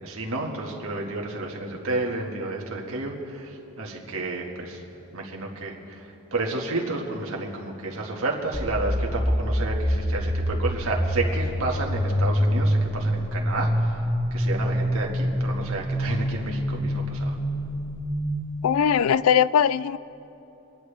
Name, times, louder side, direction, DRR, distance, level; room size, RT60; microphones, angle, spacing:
voice 1, 0.0-4.8 5.1-14.1 14.3-17.4, right 2 dB, 75° right, 0 dB, 1.8 m, -31 dB
sound 1, 8.5-18.3, equal, 10° left, 1.6 m, -26 dB
voice 2, 18.6-20.0, left 8 dB, 75° left, 18 dB, 0.3 m, -20 dB
25.5 x 10.5 x 3.4 m, 2.9 s
head